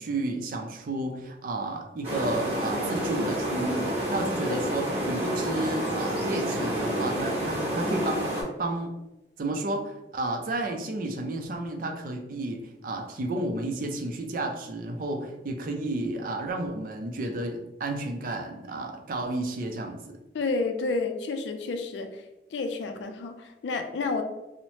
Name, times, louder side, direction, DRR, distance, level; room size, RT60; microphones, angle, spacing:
voice 1, 0.0-8.9 9.4-20.0, right 2 dB, 50° right, 4 dB, 0.4 m, -32 dB
sound 1, 2.0-8.4, right 1 dB, 35° right, 0.9 m, -29 dB
voice 2, 20.3-22.1 22.5-24.2, left 3 dB, 80° left, 6 dB, 0.4 m, -30 dB
2.8 x 2.0 x 3.0 m, 1.0 s
head